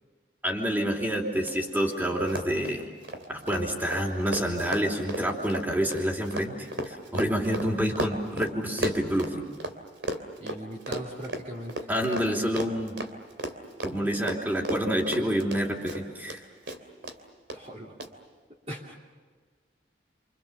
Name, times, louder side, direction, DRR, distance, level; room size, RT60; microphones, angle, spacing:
voice 1, 0.4-2.9 3.3-9.4 11.9-13.0 13.8-16.4, equal, 10° right, 0 dB, 3.2 m, -28 dB
Run, 1.4-1.5 1.8-1.9 2.2-9.7 10.0-16.4 16.7-17.2 17.5-17.6 18.0-18.1, right 1 dB, 85° right, 2.9 m, -34 dB
voice 2, 10.4-11.9 17.5-18.0 18.7-19.0, right 1 dB, 35° right, -1 dB, 2.7 m, -39 dB
29.0 x 26.0 x 7.0 m, 1.5 s
head